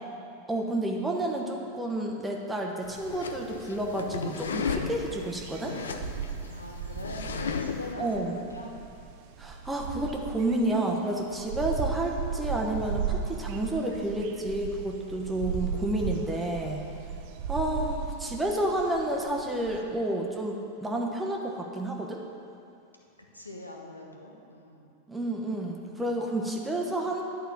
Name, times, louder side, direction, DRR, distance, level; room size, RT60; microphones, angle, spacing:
voice 1, 0.5-5.8 8.0-8.4 9.4-16.8 17.5-22.2 25.1-27.2, right 1 dB, 10° right, -1 dB, 1.0 m, -30 dB
sound 1, 2.8-7.9, left 5 dB, 65° left, 0.6 m, -35 dB
sound 2, 4.4-19.8, right 7 dB, 45° right, 0.7 m, -36 dB
voice 2, 6.5-8.7 16.8-17.4 23.3-24.9, left 2 dB, 85° left, 0 dB, 1.1 m, -43 dB
11.0 x 4.4 x 7.1 m, 2.6 s
figure-of-eight pair, 90°, 0 cm